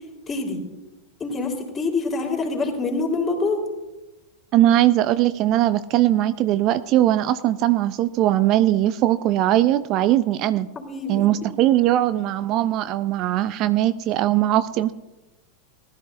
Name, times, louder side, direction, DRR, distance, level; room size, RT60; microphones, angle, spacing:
voice 1, 0.3-0.6 1.2-3.6 10.8-11.5, left 3 dB, 20° left, 0 dB, 3.6 m, -26 dB
voice 2, 4.5-10.7 11.1-14.9, right 13 dB, 45° right, 14 dB, 0.4 m, -20 dB
19.5 x 12.5 x 2.6 m, 1.0 s
figure-of-eight pair, 90°, 0 cm